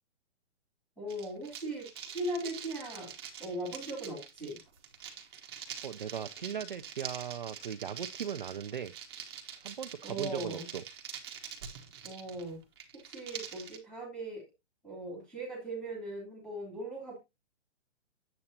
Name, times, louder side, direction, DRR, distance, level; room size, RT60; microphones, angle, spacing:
voice 1, 1.0-3.1 3.4-4.6 10.0-10.7 12.0-12.6 12.9-14.4 14.8-17.2, right 1 dB, ahead, 2.8 m, -39 dB
sound 1, 1.1-13.8, right 8 dB, 20° right, 1.0 m, -45 dB
voice 2, 5.8-8.9 9.6-10.8, right 8 dB, 45° right, 0.4 m, -38 dB
8.5 x 7.8 x 2.8 m
hypercardioid pair, 175°, 35 cm